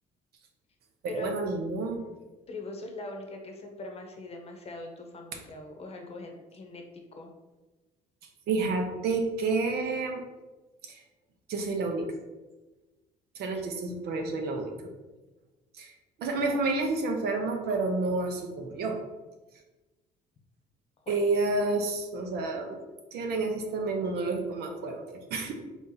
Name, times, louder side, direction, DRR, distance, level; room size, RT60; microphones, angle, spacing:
voice 1, 1.0-2.0 8.5-10.2 10.8-11.0 11.5-12.1 13.3-14.7 15.7-15.9 16.2-19.0 21.1-22.8 23.1-25.5, right 3 dB, 70° right, 3 dB, 0.8 m, -29 dB
voice 2, 2.5-6.8 7.1-7.3 21.0-21.1, left 2 dB, 35° left, 3 dB, 0.8 m, -41 dB
4.0 x 2.9 x 3.9 m, 1.2 s
cardioid pair, 110°, 17 cm